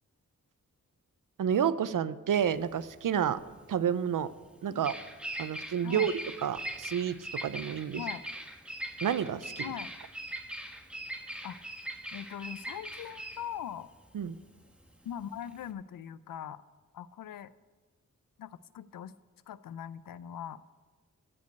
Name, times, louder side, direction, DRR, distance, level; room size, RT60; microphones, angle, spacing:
voice 1, 1.4-3.4 3.7-4.3 4.6-4.9 5.4-6.1 6.4-8.0 9.0-9.7 14.1-14.4, right 8 dB, 75° right, 15 dB, 0.6 m, -30 dB
Bird vocalization bird call bird song, 2.4-15.7, right 1 dB, 5° right, 1.3 m, -41 dB
voice 2, 9.6-9.9 11.4-11.6 12.1-13.9 15.0-16.6 16.9-17.5 18.4-19.1 19.5-20.6, left 9 dB, 85° left, 16 dB, 0.5 m, -41 dB
15.5 x 5.3 x 8.0 m, 1.3 s
cardioid pair, 75°, 32 cm